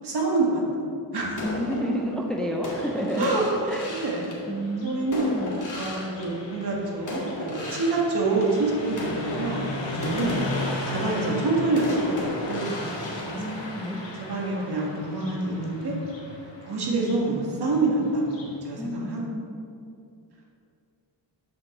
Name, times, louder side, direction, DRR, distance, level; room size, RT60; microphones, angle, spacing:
voice 1, 0.0-1.4 3.2-3.4 3.9-4.3 4.8-10.4 10.9-13.5 14.2-16.0 16.6-19.2, right 2 dB, 60° right, -3 dB, 1.8 m, -27 dB
sound 1, 1.3-6.7 7.1-14.2, left 1 dB, 45° left, 1.9 m, -36 dB
voice 2, 1.4-3.3 3.7-3.9 4.5-5.7 13.4-14.1 18.8-19.6, equal, ahead, 0 dB, 0.6 m, -30 dB
Car passing by, 2.6-18.6, left 2 dB, 85° left, 1.8 m, -37 dB
6.9 x 5.6 x 6.4 m, 2.5 s
wide cardioid pair, 150°, 43 cm